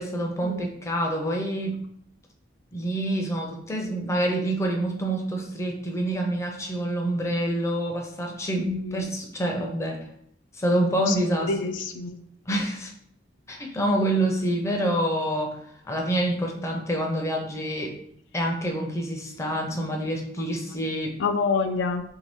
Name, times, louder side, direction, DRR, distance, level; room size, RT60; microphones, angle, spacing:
voice 1, 0.0-1.9 2.7-10.0 10.5-11.7 12.5-12.9 13.5-15.6 15.8-18.0 18.3-21.2, right 1 dB, 15° left, 1 dB, 0.5 m, -27 dB
voice 2, 8.6-9.0 11.1-11.2 11.5-12.2 21.2-22.0, left 4 dB, 80° left, 7 dB, 0.4 m, -27 dB
3.0 x 2.6 x 3.4 m, 0.69 s
head